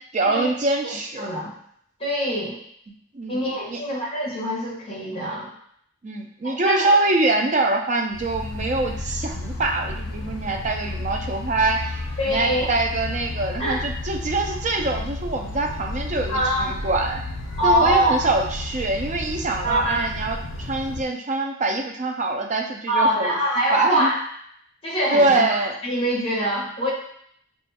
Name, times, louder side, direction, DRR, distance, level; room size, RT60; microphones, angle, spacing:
voice 1, 0.1-1.3 3.1-3.4 3.7-3.8 6.0-17.2 17.6-23.3 23.7-24.1 25.1-25.8, right 2 dB, 35° right, 3 dB, 0.4 m, -24 dB
voice 2, 0.8-1.5 2.0-2.6 3.3-5.5 6.4-6.9 12.2-12.7 13.6-13.8 16.3-16.7 17.6-18.2 19.6-20.1 22.9-24.2 24.8-25.4 25.8-26.9, equal, 25° left, -5 dB, 1.2 m, -24 dB
sound 1, 8.1-21.0, left 2 dB, 65° left, 0.5 m, -32 dB
5.1 x 2.3 x 2.8 m, 0.68 s
head